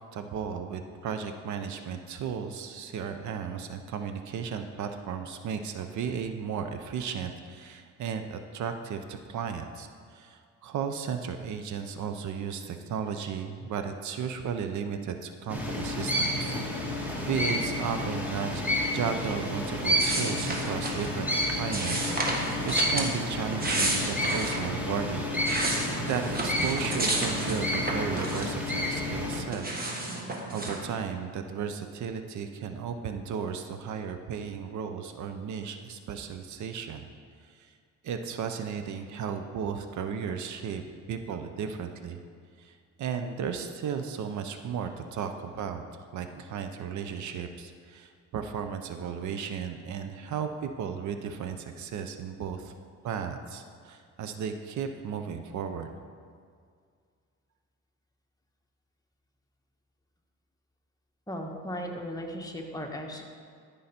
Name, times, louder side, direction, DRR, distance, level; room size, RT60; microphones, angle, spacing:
voice 1, 0.0-25.3 25.6-29.7 30.5-37.1 37.4-37.7 38.0-42.2 42.6-45.8 46.1-52.7 53.0-55.9, right 7 dB, 70° right, 7 dB, 0.7 m, -35 dB
sound 1, 15.5-29.4, left 1 dB, 5° right, 1.6 m, -30 dB
sound 2, 20.0-21.1 21.7-23.1 23.5-24.6 25.1-28.7 29.0-30.8, right 2 dB, 30° right, 1.6 m, -31 dB
voice 2, 61.3-63.2, equal, 10° left, 1 dB, 1.3 m, -36 dB
13.0 x 5.6 x 4.3 m, 2.1 s
cardioid pair, 90°, 30 cm